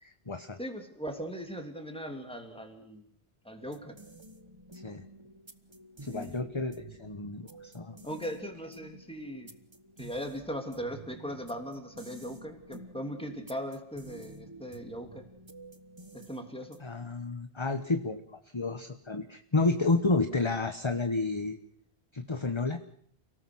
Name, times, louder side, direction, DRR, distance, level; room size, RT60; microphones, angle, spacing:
voice 1, 0.0-0.6 4.8-5.0 6.0-8.0 16.8-21.6 22.1-22.8, left 3 dB, 25° left, 8 dB, 1.2 m, -31 dB
voice 2, 0.6-3.0 3.4-4.0 6.0-6.3 8.0-9.5 10.0-15.3 16.1-16.8, equal, 5° left, 4 dB, 3.1 m, -39 dB
sound 1, 3.6-17.1, right 2 dB, 25° right, 1.3 m, -51 dB
30.0 x 18.0 x 6.3 m, 0.62 s
omnidirectional pair, 1.1 m